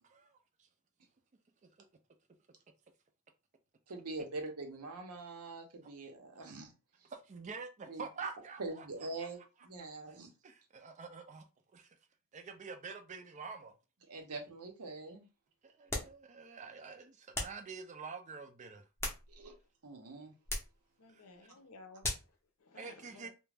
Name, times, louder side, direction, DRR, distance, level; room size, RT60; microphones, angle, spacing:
voice 1, 3.9-6.7 7.9-8.0 8.6-10.3 14.1-15.2 19.3-19.5 19.8-20.3, right 2 dB, 90° right, 0.7 m, -44 dB
voice 2, 7.1-8.9 10.1-10.2 10.4-11.4 11.7-12.0 12.3-13.7 15.6-18.8 21.1-21.2 22.7-23.3, right 5 dB, 30° right, 0.4 m, -47 dB
sound 1, 15.9-16.2 17.3-17.7 18.7-19.6 20.5-20.8 22.0-22.4, left 1 dB, 10° left, 0.6 m, -39 dB
voice 3, 21.0-23.3, left 3 dB, 70° left, 0.6 m, -56 dB
2.4 x 2.1 x 3.2 m
head